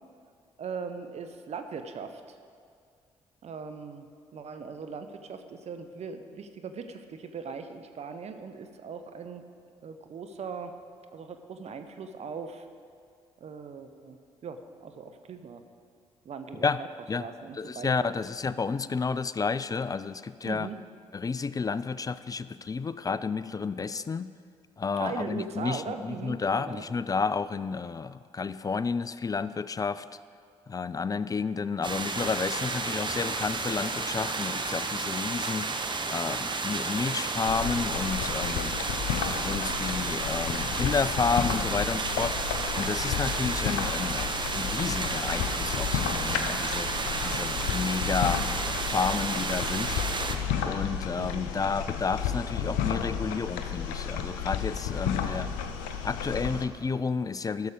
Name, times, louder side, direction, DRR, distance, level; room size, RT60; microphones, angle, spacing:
voice 1, 0.6-2.4 3.4-4.1 4.3-9.4 9.8-10.7 11.1-12.7 13.4-14.2 14.4-15.6 16.2-16.9 17.2-18.1 20.4-20.8 25.0-26.8 38.9-39.7 51.2-51.4, right 5 dB, 55° right, 8 dB, 0.8 m, -40 dB
voice 2, 17.5-20.7 21.1-24.3 24.8-30.1 30.7-35.7 36.1-38.8 39.4-46.9 47.2-48.4 48.8-50.0 50.6-55.5 56.0-57.7, left 5 dB, 25° left, 15 dB, 0.4 m, -31 dB
sound 1, 31.8-50.4, right 4 dB, 35° right, 1.0 m, -32 dB
sound 2, 37.5-56.6, left 8 dB, 80° left, 0.6 m, -32 dB
13.0 x 6.7 x 5.1 m, 2.2 s
hypercardioid pair, 45°, 14 cm